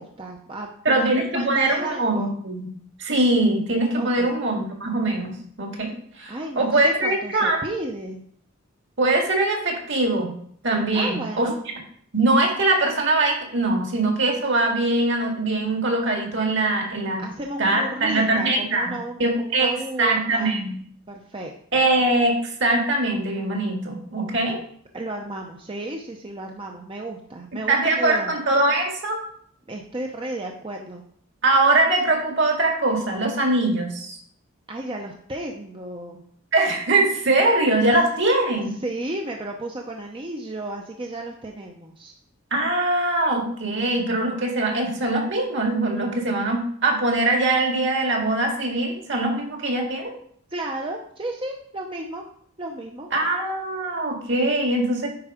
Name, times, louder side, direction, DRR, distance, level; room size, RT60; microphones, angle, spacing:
voice 1, 0.0-2.3 4.0-4.3 6.3-8.2 10.9-11.6 17.2-20.6 21.1-21.8 24.9-28.3 29.7-31.0 34.7-36.2 38.8-42.2 50.5-52.2 52.6-53.1, right 2 dB, 25° right, 1 dB, 0.6 m, -33 dB
voice 2, 0.9-2.7 3.0-7.6 9.0-10.3 10.6-11.5 12.1-17.2 17.6-18.9 19.2-19.7 20.0-20.8 21.7-24.6 27.7-29.2 31.4-34.2 36.5-38.7 42.5-50.1 53.1-55.1, right 2 dB, 55° right, 1 dB, 2.0 m, -22 dB
9.6 x 4.6 x 5.0 m, 0.63 s
head